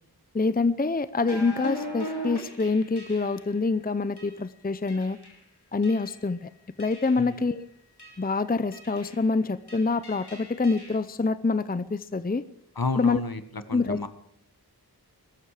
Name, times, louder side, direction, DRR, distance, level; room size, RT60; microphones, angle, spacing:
voice 1, 0.3-5.2 5.7-6.5 6.8-7.7 8.2-12.4 13.0-13.2 13.7-14.0, left 3 dB, 25° left, 14 dB, 0.6 m, -26 dB
sound 1, 1.2-3.5 4.2-4.4 4.9-5.4 5.8-6.3 6.8-7.4 8.0-8.3 8.7-9.3 9.7-11.0, equal, 80° left, 3.4 m, -39 dB
voice 2, 12.7-14.1, left 3 dB, 65° left, 10 dB, 1.4 m, -31 dB
22.0 x 13.0 x 5.0 m, 0.72 s
wide cardioid pair, 45°, 39 cm